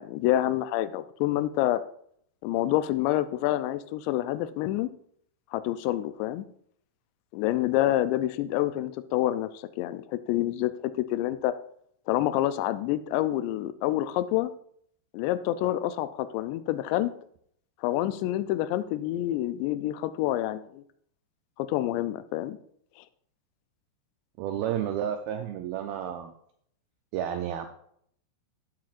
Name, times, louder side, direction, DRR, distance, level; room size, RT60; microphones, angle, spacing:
voice 1, 0.0-1.8 2.4-4.9 5.5-6.5 7.3-11.5 12.1-14.5 15.1-17.1 17.8-20.8 21.6-22.6, left 14 dB, 90° left, 13 dB, 2.7 m, -27 dB
voice 2, 24.4-26.3 27.1-27.7, right 10 dB, 85° right, 6 dB, 2.1 m, -31 dB
14.5 x 7.5 x 2.5 m, 0.66 s
omnidirectional pair, 4.9 m